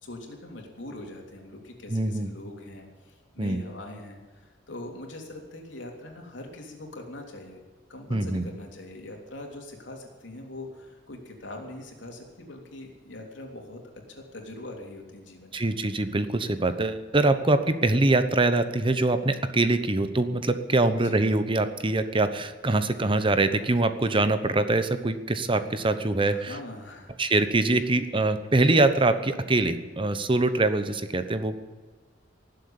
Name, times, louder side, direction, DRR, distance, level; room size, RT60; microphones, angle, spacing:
voice 1, 0.0-7.6 7.9-13.8 14.1-15.7 20.8-21.2 26.2-27.3, left 2 dB, 85° left, 1 dB, 3.3 m, -42 dB
voice 2, 1.9-2.3 3.4-3.6 8.1-8.4 15.5-26.6 27.2-31.7, right 2 dB, 30° right, 10 dB, 1.0 m, -24 dB
18.5 x 7.9 x 8.7 m, 1.3 s
head